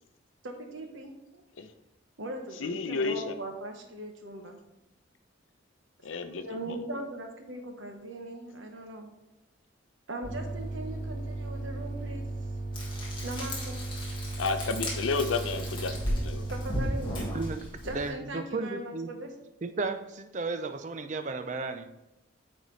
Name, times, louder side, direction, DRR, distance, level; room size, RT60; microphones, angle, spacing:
voice 1, 0.4-1.4 2.2-4.6 6.4-9.1 10.1-12.3 13.2-13.8 16.5-17.2 17.8-19.3, right 1 dB, 75° right, 1.1 m, -39 dB
voice 2, 2.6-3.3 6.0-6.8 14.4-16.4, left 4 dB, 80° left, 0.6 m, -31 dB
sound 1, 10.2-17.5, right 2 dB, 65° left, 1.2 m, -36 dB
Frying (food), 12.7-18.1, left 1 dB, 25° left, 1.7 m, -36 dB
voice 3, 17.3-19.1 19.6-21.9, right 3 dB, 35° right, 0.4 m, -34 dB
8.8 x 4.0 x 3.2 m
head